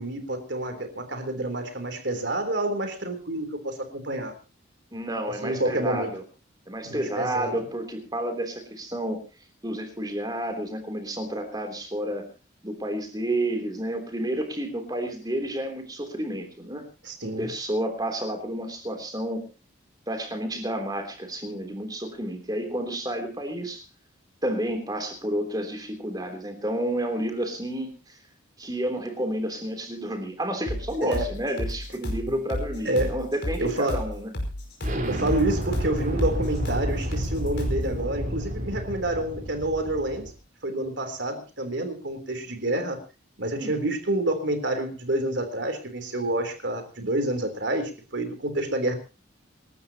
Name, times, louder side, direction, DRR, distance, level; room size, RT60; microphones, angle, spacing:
voice 1, 0.0-4.3 5.4-6.1 6.9-7.6 17.0-17.5 31.0-31.4 32.8-33.2 33.6-34.1 35.1-40.3 40.6-43.0 43.4-48.9, right 1 dB, 60° right, 6 dB, 3.7 m, -28 dB
voice 2, 4.9-6.2 6.7-9.2 9.6-12.3 12.6-16.8 17.4-19.5 20.1-23.8 24.4-28.2 28.6-34.3 43.5-43.7, right 1 dB, 20° right, 5 dB, 3.4 m, -30 dB
sound 1, 30.7-37.9, equal, 55° left, 5.5 m, -32 dB
Explosion, 34.8-40.3, equal, 40° right, 4.3 m, -31 dB
28.0 x 12.5 x 3.0 m, 0.31 s
head